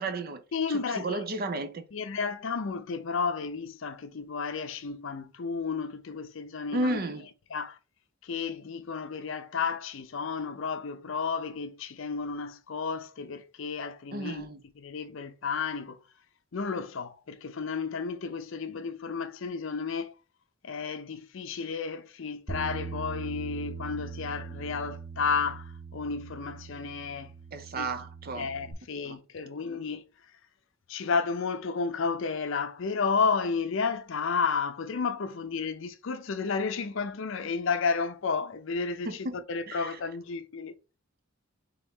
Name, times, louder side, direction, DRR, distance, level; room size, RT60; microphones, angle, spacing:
voice 1, 0.0-1.9 6.7-7.3 14.1-14.6 27.5-28.5 29.1-29.2 39.1-39.4 39.7-40.0, right 2 dB, 50° right, 0.6 m, -33 dB
voice 2, 0.5-1.2 1.9-7.0 7.5-7.8 8.2-14.5 14.8-16.0 16.5-20.1 20.6-27.3 27.8-27.9 28.4-30.0 30.9-39.2 39.5-40.7, left 5 dB, 65° left, 0.5 m, -32 dB
Bass guitar, 22.5-28.7, right 4 dB, 15° right, 1.0 m, -41 dB
4.0 x 3.5 x 3.7 m
head